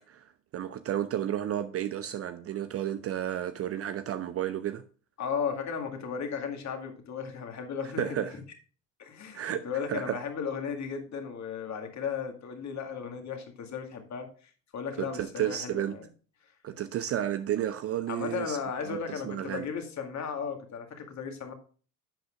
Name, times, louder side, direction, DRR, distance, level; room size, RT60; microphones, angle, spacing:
voice 1, 0.1-4.8 8.0-8.4 9.3-9.6 9.9-10.2 15.0-16.0 16.6-18.6 18.9-19.7, right 11 dB, 30° right, 0.6 m, -32 dB
voice 2, 5.2-8.4 9.0-16.0 18.1-21.5, left 6 dB, 35° left, 2.1 m, -35 dB
11.0 x 7.7 x 2.5 m
figure-of-eight pair, 70°, 48 cm